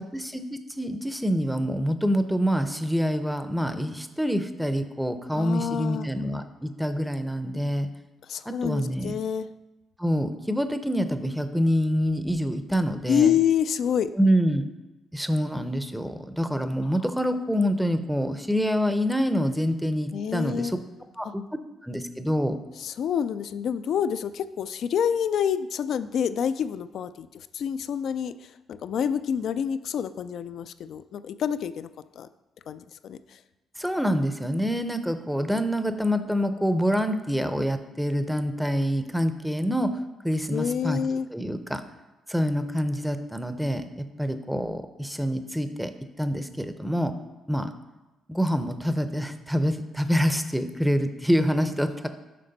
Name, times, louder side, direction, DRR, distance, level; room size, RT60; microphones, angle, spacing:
voice 1, 0.1-7.9 8.5-9.1 10.0-13.4 14.2-14.6 15.1-20.8 21.2-21.4 21.8-22.6 33.8-39.9 40.2-41.8 42.3-45.9 46.2-47.1 47.5-47.7 48.3-52.1, equal, ahead, 9 dB, 0.5 m, -26 dB
voice 2, 5.3-6.1 8.3-9.5 13.1-14.1 20.1-20.7 21.3-21.4 22.8-28.3 28.7-31.9 32.2-32.3 32.7-33.2 40.5-41.3, left 8 dB, 65° left, 13 dB, 0.3 m, -27 dB
7.6 x 5.1 x 4.0 m, 1.1 s
cardioid pair, 90°, 0 cm